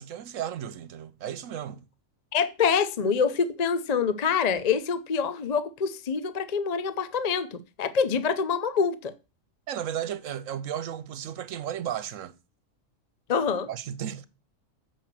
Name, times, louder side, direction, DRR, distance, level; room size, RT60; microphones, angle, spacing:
voice 1, 0.0-1.8 9.7-12.4 13.7-14.2, right 10 dB, 75° right, 1.1 m, -34 dB
voice 2, 2.3-9.1 13.3-13.7, left 6 dB, 40° left, 0.6 m, -26 dB
7.5 x 5.5 x 7.4 m
omnidirectional pair, 1.4 m